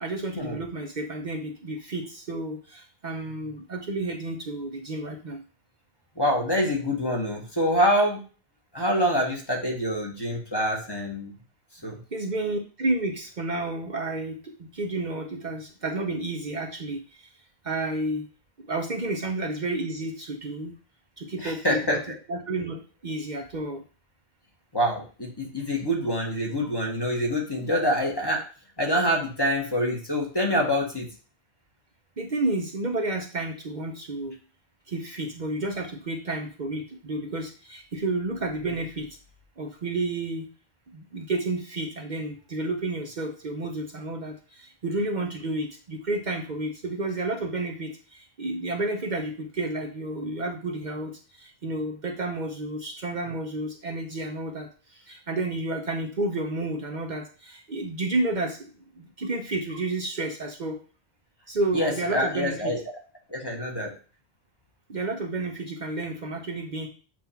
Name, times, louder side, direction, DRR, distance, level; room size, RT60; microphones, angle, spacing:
voice 1, 0.0-5.4 12.1-17.3 17.6-18.3 18.6-20.7 21.2-22.0 22.3-23.8 32.2-34.4 34.9-39.1 39.6-40.5 40.9-60.8 61.5-62.7 64.9-66.9, right 2 dB, 50° right, 2 dB, 0.8 m, -31 dB
voice 2, 6.2-8.2 8.7-11.3 11.8-12.0 21.4-22.0 24.7-28.4 28.8-31.1 61.7-62.8 63.3-63.9, equal, 25° left, -1 dB, 1.3 m, -26 dB
7.6 x 2.6 x 5.7 m, 0.38 s
omnidirectional pair, 1.0 m